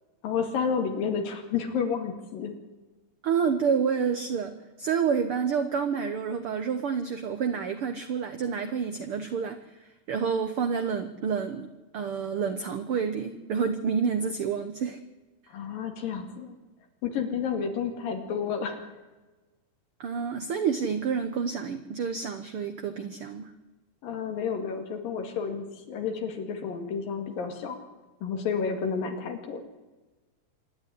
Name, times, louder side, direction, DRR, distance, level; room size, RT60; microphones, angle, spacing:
voice 1, 0.2-2.5 15.5-16.5 17.0-18.8 24.0-27.8 28.2-29.6, left 6 dB, 80° left, 5 dB, 3.9 m, -30 dB
voice 2, 3.2-11.7 11.9-15.0 20.0-23.5, right 6 dB, 65° right, 8 dB, 1.3 m, -29 dB
26.5 x 10.5 x 9.9 m, 1.2 s
omnidirectional pair, 4.0 m